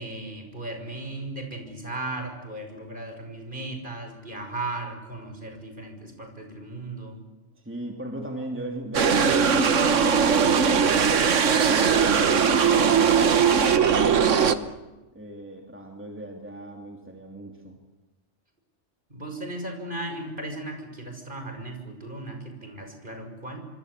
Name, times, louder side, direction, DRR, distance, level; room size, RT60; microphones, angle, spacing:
voice 1, 0.0-7.2 19.1-23.6, right 2 dB, 45° right, 4 dB, 6.6 m, -36 dB
voice 2, 7.6-11.1 11.6-14.8 15.1-17.8, right 1 dB, 10° right, 2 dB, 2.9 m, -37 dB
sound 1, 8.9-14.6, right 6 dB, 90° right, 1.6 m, -20 dB
26.5 x 25.0 x 8.3 m, 1.2 s
omnidirectional pair, 1.2 m